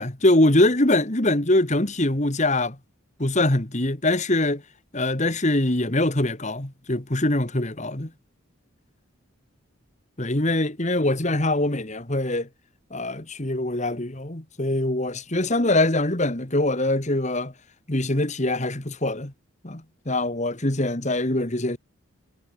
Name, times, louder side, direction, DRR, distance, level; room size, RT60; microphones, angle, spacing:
voice 1, 0.0-2.8 3.2-4.6 4.9-8.1 10.2-12.5 12.9-17.5 17.9-19.3 19.6-21.8, left 1 dB, 35° left, 1.9 m, -23 dB
head